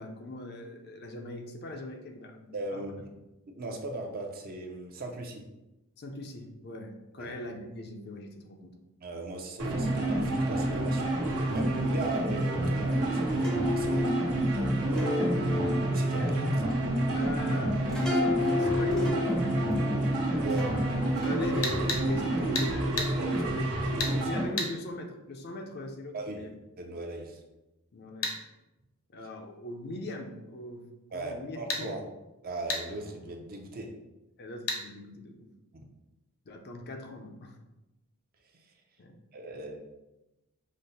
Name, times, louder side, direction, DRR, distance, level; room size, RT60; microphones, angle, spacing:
voice 1, 0.0-2.9 6.0-8.7 17.1-19.6 21.2-23.6 24.2-26.5 27.9-28.4 29.1-31.9 34.4-35.5 36.5-37.6 39.0-39.2, left 1 dB, 50° left, 4 dB, 0.5 m, -40 dB
voice 2, 2.5-3.1 3.6-5.4 7.2-7.4 9.0-11.2 11.5-14.2 14.9-15.6 15.9-16.5 20.4-20.7 23.1-23.4 24.1-24.4 26.1-26.4 26.8-27.4 31.1-32.0 32.4-33.9 35.7-35.9 39.3-39.8, right 2 dB, 45° right, 2 dB, 0.6 m, -38 dB
sound 1, 9.6-24.5, right 1 dB, 85° right, 1.1 m, -28 dB
sound 2, 13.4-22.5, left 2 dB, ahead, 0.6 m, -33 dB
sound 3, 21.6-22.0 22.6-22.7 23.0-23.1 24.0-24.1 24.6-24.7 28.2-28.4 31.7-31.8 32.7-32.8 34.7-34.8, left 3 dB, 70° left, 0.9 m, -30 dB
5.1 x 2.0 x 4.1 m, 0.99 s
head